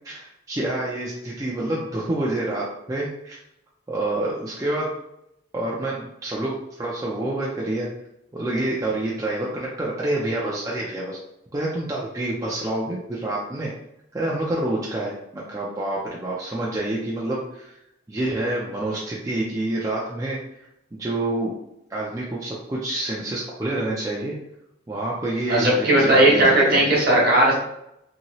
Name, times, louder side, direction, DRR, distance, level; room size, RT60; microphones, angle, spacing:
voice 1, 0.0-3.4 3.9-5.0 5.5-7.9 8.3-11.2 11.5-13.7 14.1-17.8 18.1-20.4 20.9-21.6 21.9-24.4 24.9-26.9, right 1 dB, 15° right, -5 dB, 0.4 m, -27 dB
voice 2, 25.5-27.5, right 1 dB, 50° right, -3 dB, 1.0 m, -17 dB
2.8 x 2.7 x 2.9 m, 0.82 s
head